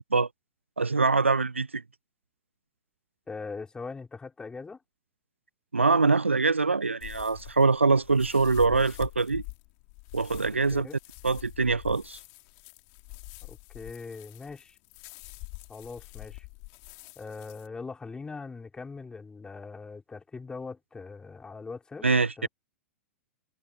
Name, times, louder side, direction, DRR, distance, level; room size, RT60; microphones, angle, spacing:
voice 1, 0.8-1.8 5.7-9.4 10.1-10.9 11.2-12.2 22.0-22.5, right 4 dB, 85° right, 0.5 m, -24 dB
voice 2, 3.3-4.8 10.7-11.0 13.4-14.8 15.7-16.4 17.1-22.1 22.4-22.5, left 4 dB, 10° left, 5.0 m, -41 dB
sound 1, 7.0-17.7, left 40 dB or more, 45° left, 3.6 m, -45 dB
figure-of-eight pair, 95°, 6 cm